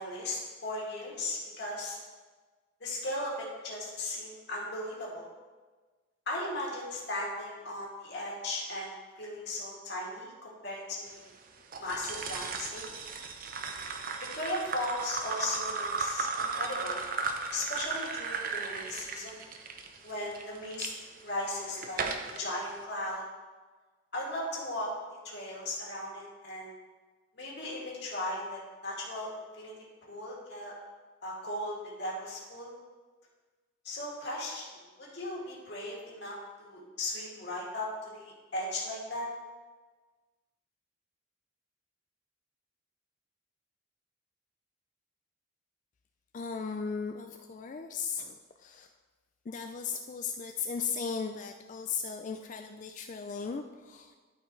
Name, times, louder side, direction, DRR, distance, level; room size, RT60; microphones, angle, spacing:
voice 1, 0.0-2.0 2.8-5.3 6.3-8.9 9.2-11.2 11.8-12.9 14.3-17.0 17.5-19.4 20.0-20.9 21.2-23.2 24.1-26.8 27.4-29.7 30.1-30.7 31.2-32.7 33.8-34.6 35.0-39.3, left 1 dB, 55° left, -4 dB, 2.4 m, -37 dB
sound 1, 11.7-20.9 21.5-22.4, right 4 dB, 45° right, 0.7 m, -35 dB
voice 2, 46.3-48.9 49.5-54.2, left 5 dB, 40° left, 5 dB, 0.3 m, -37 dB
12.5 x 5.7 x 3.2 m, 1.3 s
head